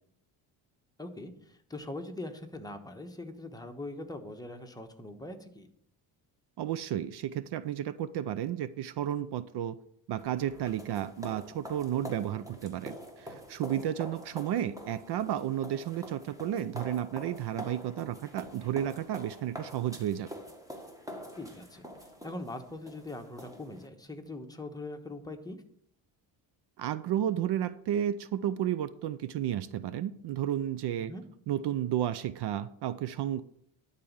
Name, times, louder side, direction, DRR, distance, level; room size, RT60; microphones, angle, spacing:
voice 1, 1.0-5.7 21.4-21.9 22.2-25.6 31.0-31.2, left 2 dB, 10° left, 4 dB, 1.2 m, -42 dB
voice 2, 6.6-9.8 10.1-20.3 26.8-31.1 31.5-33.4, right 11 dB, 55° right, 15 dB, 0.6 m, -32 dB
sound 1, 10.2-23.9, equal, 5° right, 1.6 m, -46 dB
11.5 x 4.2 x 7.3 m, 0.70 s
cardioid pair, 105°, 47 cm